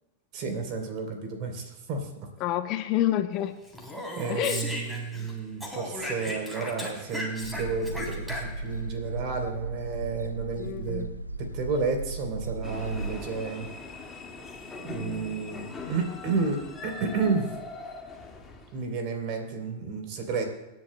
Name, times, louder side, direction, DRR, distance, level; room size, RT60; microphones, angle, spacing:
voice 1, 0.3-2.1 4.2-11.1 11.4-13.7 14.8-17.5 18.7-20.4, right 4 dB, 40° right, 4 dB, 3.4 m, -31 dB
voice 2, 2.4-3.6 4.3-4.7 10.6-11.2 15.0-15.4 15.8-16.0, left 13 dB, 40° left, 10 dB, 0.8 m, -29 dB
Speech, 3.7-5.3 5.6-8.8, left 1 dB, 5° right, 3.2 m, -36 dB
sound 1, 7.4-13.2, right 2 dB, 85° right, 1.1 m, -36 dB
sound 2, 12.6-18.9, left 3 dB, 15° left, 1.9 m, -41 dB
26.5 x 11.0 x 2.2 m, 1.1 s
figure-of-eight pair, 90°, 0 cm